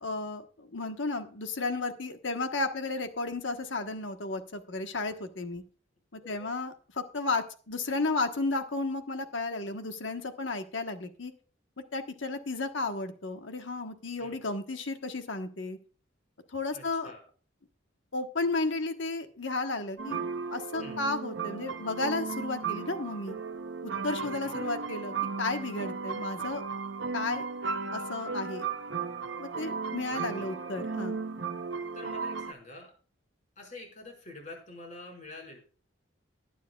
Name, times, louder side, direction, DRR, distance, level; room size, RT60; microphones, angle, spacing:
voice 1, 0.0-5.6 6.1-11.3 11.9-15.8 16.5-17.1 18.1-20.2 20.5-23.3 23.8-26.6 27.1-27.5 27.9-28.7 29.4-31.2, left 3 dB, 70° left, 7 dB, 1.2 m, -33 dB
voice 2, 6.2-6.5 14.2-14.4 16.7-17.2 20.8-21.1 24.2-24.8 30.1-30.7 31.9-32.9 33.5-35.6, left 2 dB, 40° left, 0 dB, 5.0 m, -47 dB
sound 1, 20.0-32.5, right 5 dB, 65° right, 0.8 m, -35 dB
19.5 x 9.3 x 2.3 m, 0.40 s
head